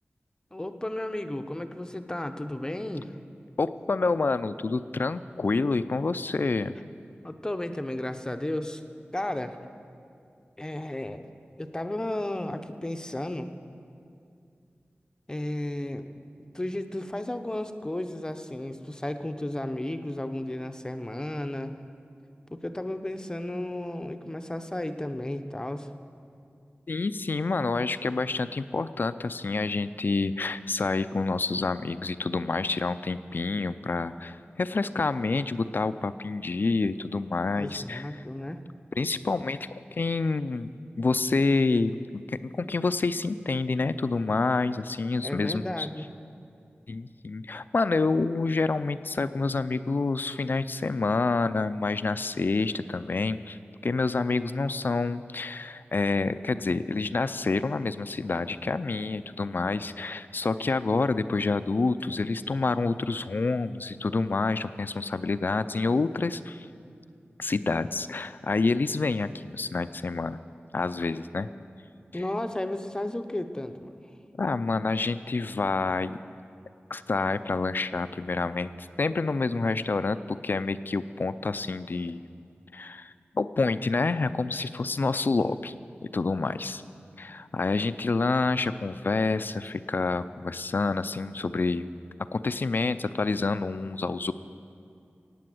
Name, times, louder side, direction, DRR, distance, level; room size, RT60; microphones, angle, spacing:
voice 1, 0.5-3.1 7.2-8.8 9.1-9.6 10.6-11.3 11.6-13.5 15.3-16.1 16.5-21.8 22.5-25.9 37.5-38.6 45.2-46.1 72.1-74.1, left 1 dB, 20° left, 8 dB, 0.8 m, -33 dB
voice 2, 3.6-6.8 26.9-38.2 39.0-45.9 46.9-66.7 67.4-70.4 70.7-71.5 72.1-72.2 74.4-76.2 76.9-82.2 82.7-85.7 86.0-86.8 87.2-91.8 92.3-94.3, left 3 dB, 55° left, 13 dB, 0.4 m, -28 dB
16.5 x 9.1 x 7.8 m, 2.4 s
wide cardioid pair, 85°, 4 cm